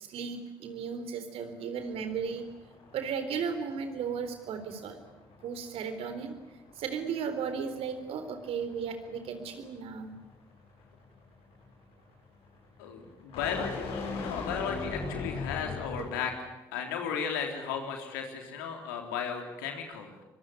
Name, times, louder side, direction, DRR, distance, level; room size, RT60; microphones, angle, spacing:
voice 1, 0.0-2.4 2.9-5.0 5.4-6.3 6.8-10.1 16.0-16.1, right 6 dB, 65° right, 9 dB, 3.9 m, -35 dB
sound 1, 1.8-16.3, left 4 dB, 65° left, 6.8 m, -42 dB
voice 2, 12.8-16.3 16.7-20.2, left 7 dB, 80° left, 3 dB, 3.6 m, -35 dB
24.5 x 23.5 x 9.8 m, 1.0 s
hypercardioid pair, 45°, 10 cm